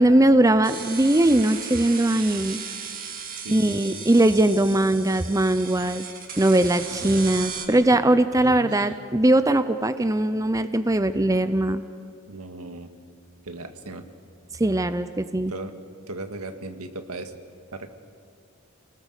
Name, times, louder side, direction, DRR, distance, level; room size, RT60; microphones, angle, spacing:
voice 1, 0.0-2.6 3.5-6.0 6.4-11.8 14.6-15.5, right 1 dB, 15° right, 11 dB, 0.6 m, -20 dB
sound 1, 0.6-7.7, right 6 dB, 40° right, 2.3 m, -36 dB
voice 2, 3.4-4.1 8.4-8.9 12.3-12.9 13.4-14.0 15.5-15.7 16.1-17.3 17.7-18.0, right 2 dB, 85° right, 7 dB, 1.9 m, -37 dB
29.5 x 20.0 x 6.5 m, 2.3 s
head